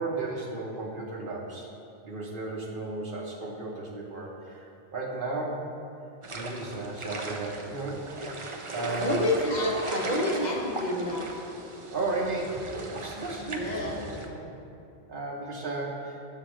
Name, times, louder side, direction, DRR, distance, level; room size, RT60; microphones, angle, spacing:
voice 1, 0.0-1.7 2.0-5.6 6.3-8.0 8.3-9.2 11.9-14.5 15.1-16.2, right 2 dB, 55° right, -1 dB, 1.0 m, -34 dB
sound 1, 6.2-14.3, right 2 dB, 40° right, 0.5 m, -38 dB
voice 2, 8.9-11.3 13.6-14.0, left 1 dB, 45° left, -2 dB, 1.0 m, -28 dB
6.8 x 4.0 x 6.2 m, 2.7 s
omnidirectional pair, 1.1 m